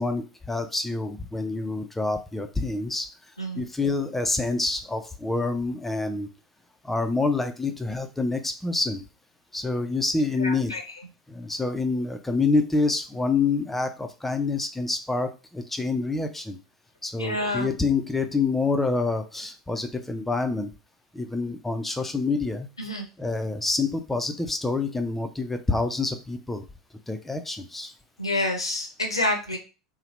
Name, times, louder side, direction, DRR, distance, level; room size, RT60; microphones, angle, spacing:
voice 1, 0.0-3.1 3.6-6.3 6.8-9.0 9.5-10.7 11.3-16.6 17.0-20.7 21.1-22.7 23.2-26.6 27.1-27.9, left 3 dB, 5° left, 7 dB, 0.4 m, -27 dB
voice 2, 10.4-10.8 17.2-17.7 22.8-23.1 28.2-29.6, left 1 dB, 90° left, 3 dB, 0.6 m, -28 dB
2.8 x 2.1 x 3.0 m, 0.31 s
figure-of-eight pair, 80°, 3 cm